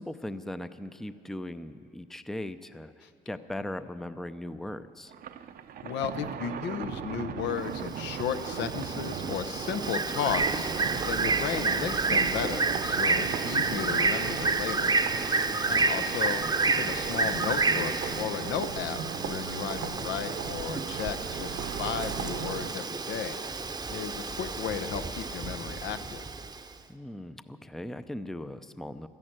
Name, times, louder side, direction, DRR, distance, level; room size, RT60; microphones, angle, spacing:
voice 1, 0.0-5.1 15.5-15.8 26.9-29.1, left 1 dB, ahead, 12 dB, 0.5 m, -39 dB
Thunder, 5.1-16.9, right 9 dB, 60° right, 0.7 m, -40 dB
voice 2, 5.8-10.7 11.1-19.0 19.2-23.4 23.9-26.2, left 8 dB, 80° left, 9 dB, 0.8 m, -34 dB
Bird, 7.8-26.6, right 3 dB, 20° right, 0.8 m, -30 dB
sound 1, 10.3-22.7, right 7 dB, 75° right, 1.0 m, -38 dB
13.0 x 11.0 x 8.9 m, 2.3 s
cardioid pair, 90°, 18 cm